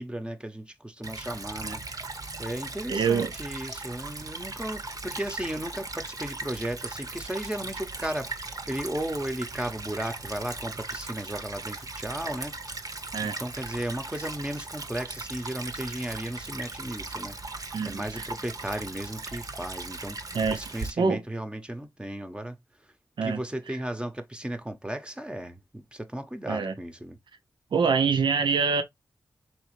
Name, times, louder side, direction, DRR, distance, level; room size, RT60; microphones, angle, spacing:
voice 1, 0.0-12.5 13.2-17.4 17.8-22.6 23.2-27.2, right 1 dB, 10° right, 0.9 m, -35 dB
Stream / Trickle dribble, 1.0-20.9, right 3 dB, 50° right, 0.9 m, -38 dB
voice 2, 2.9-3.3 13.1-13.4 17.7-18.3 20.3-20.6 21.0-21.2 23.2-23.4 23.7-23.8 26.5-26.7 27.7-28.8, right 5 dB, 75° right, 0.7 m, -25 dB
4.2 x 3.2 x 3.1 m
cardioid pair, 55°, 8 cm